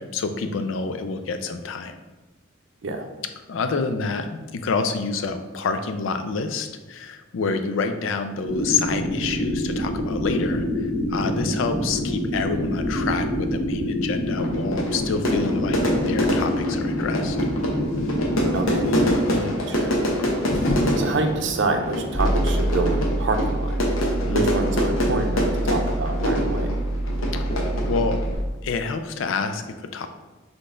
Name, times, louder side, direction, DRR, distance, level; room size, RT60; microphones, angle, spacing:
voice 1, 0.0-1.9 3.5-15.8 16.1-17.4 19.3-19.6 24.2-24.5 27.9-28.3 28.6-30.1, left 4 dB, 70° left, 8 dB, 0.4 m, -28 dB
sound 1, 8.4-19.2, left 1 dB, 35° left, 1.0 m, -26 dB
Fire / Fireworks, 14.4-28.4, equal, 90° left, 0.8 m, -26 dB
voice 2, 18.5-18.9 19.3-20.0 20.2-23.8 24.3-26.8, right 3 dB, 60° right, 5 dB, 0.5 m, -27 dB
sound 2, 22.1-28.3, right 1 dB, 10° left, 0.4 m, -26 dB
4.0 x 3.3 x 3.7 m, 1.2 s
head